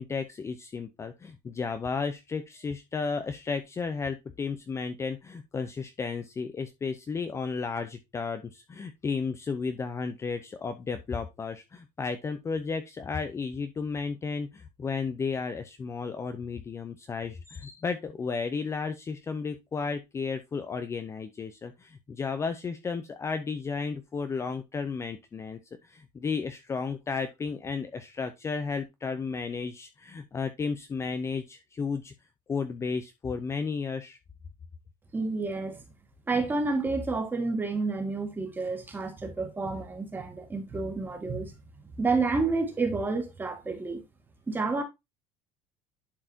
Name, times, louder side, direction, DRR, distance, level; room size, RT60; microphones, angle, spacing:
voice 1, 0.0-32.1 32.5-34.2, left 5 dB, 20° left, 0.7 m, -33 dB
voice 2, 35.1-35.8 36.3-41.5 42.0-44.0 44.5-44.8, right 3 dB, 15° right, 2.1 m, -29 dB
11.0 x 4.8 x 2.7 m
cardioid pair, 150°, 14 cm